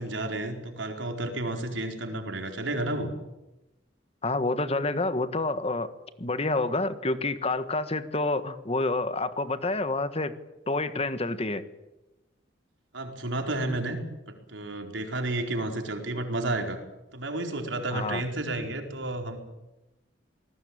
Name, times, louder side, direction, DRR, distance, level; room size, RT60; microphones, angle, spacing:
voice 1, 0.0-3.1 12.9-14.0 14.3-16.8 17.1-19.4, right 2 dB, 85° right, 4 dB, 4.5 m, -31 dB
voice 2, 4.2-5.9 6.2-10.3 10.7-11.6 17.9-18.2, left 2 dB, 35° left, 11 dB, 1.5 m, -28 dB
27.5 x 19.5 x 8.9 m, 1.0 s
head